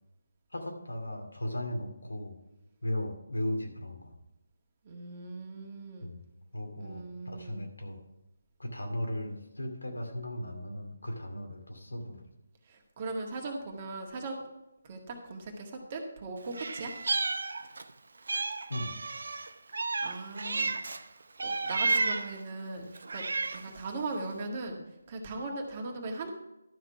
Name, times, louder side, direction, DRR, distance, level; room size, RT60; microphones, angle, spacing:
voice 1, 0.5-2.4 2.8-4.1 6.0-6.3 6.5-8.0 8.6-12.2 18.7-18.9, left 1 dB, 80° left, 2 dB, 2.4 m, -36 dB
voice 2, 4.8-6.1 6.8-7.6 12.7-14.4 14.8-16.9 20.0-21.1 21.4-23.2 23.5-24.8 25.1-26.3, right 3 dB, 30° right, 2 dB, 1.8 m, -39 dB
Meow, 16.5-17.9 18.3-21.0 21.4-22.4 22.9-23.8, right 3 dB, 60° right, 0.7 m, -32 dB
12.0 x 5.9 x 5.7 m, 0.91 s
figure-of-eight pair, 150°, 0 cm